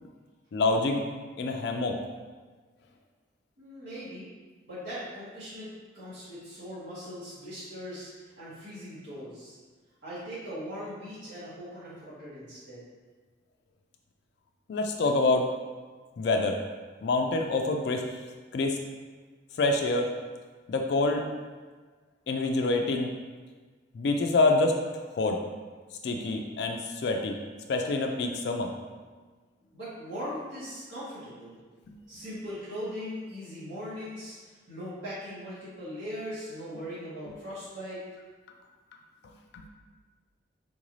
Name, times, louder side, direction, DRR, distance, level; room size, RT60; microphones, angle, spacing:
voice 1, 0.5-1.0 1.4-2.0 14.7-15.5 16.2-16.6 17.0-18.0 18.5-18.8 19.6-20.1 20.7-21.2 22.3-23.1 23.9-25.4 26.0-27.4 27.7-28.7 31.9-32.0 39.5-39.7, left 2 dB, 60° left, 3 dB, 0.3 m, -26 dB
voice 2, 3.6-4.3 4.7-5.7 5.9-9.6 10.0-12.8 29.7-31.6 32.1-38.0, equal, 75° right, -12 dB, 1.5 m, -40 dB
3.9 x 2.5 x 3.1 m, 1.4 s
head